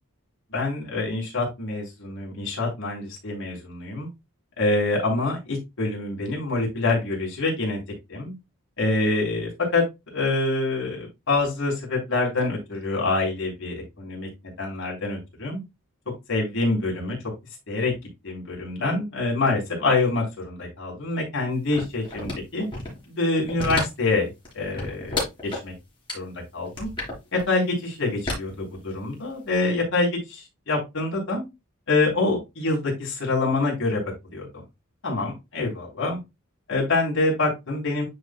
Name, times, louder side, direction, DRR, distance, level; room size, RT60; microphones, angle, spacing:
voice 1, 0.5-4.1 4.6-7.8 8.1-8.3 8.8-9.8 10.1-15.6 16.3-17.2 17.7-17.9 18.2-22.7 23.1-24.3 24.5-25.2 25.6-25.7 26.1-26.9 27.3-31.4 31.9-34.0 34.3-34.5 35.0-36.2 36.7-38.0, left 3 dB, 60° left, -2 dB, 3.7 m, -26 dB
sound 1, 21.7-23.0 23.4-24.1 24.4-25.7 26.1-26.2 26.7-27.4 28.3-29.2 29.5-29.6, left 2 dB, 20° left, 3.6 m, -30 dB
10.5 x 4.6 x 2.3 m, 0.22 s
head